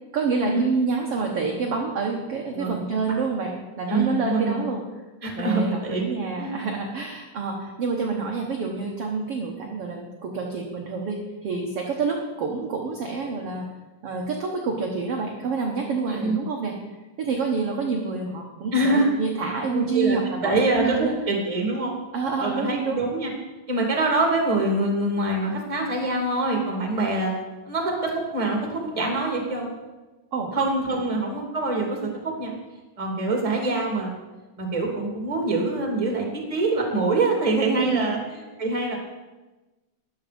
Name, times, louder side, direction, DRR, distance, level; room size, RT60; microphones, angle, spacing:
voice 1, 0.1-4.8 5.4-13.7 14.0-16.7 17.2-21.1 22.1-23.0 30.3-30.5 37.7-38.1, right 4 dB, 55° right, 1 dB, 1.8 m, -28 dB
voice 2, 3.9-4.6 5.2-6.1 6.4-6.5 16.1-16.4 18.7-19.1 19.7-22.0 22.4-23.3 23.7-27.4 27.7-29.8 30.5-32.5 33.0-34.1 34.6-38.2 38.6-39.0, right 2 dB, 10° right, 1 dB, 2.1 m, -24 dB
14.0 x 10.5 x 5.2 m, 1.1 s
omnidirectional pair, 3.9 m